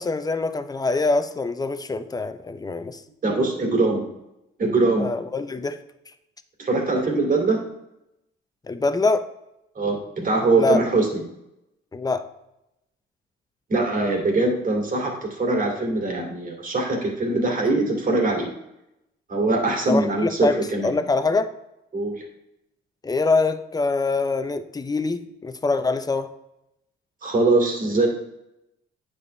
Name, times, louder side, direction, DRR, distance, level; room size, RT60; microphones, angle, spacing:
voice 1, 0.0-3.0 5.0-5.8 8.7-9.3 10.6-10.8 11.9-12.3 19.9-21.5 23.0-26.3, left 3 dB, 20° left, 0.7 m, -24 dB
voice 2, 3.2-4.1 4.6-5.1 6.6-7.6 9.8-11.2 13.7-18.5 19.3-20.9 21.9-22.2 27.2-28.1, right 2 dB, 45° right, 2.5 m, -22 dB
9.4 x 7.2 x 3.3 m
cardioid pair, 90°, 20 cm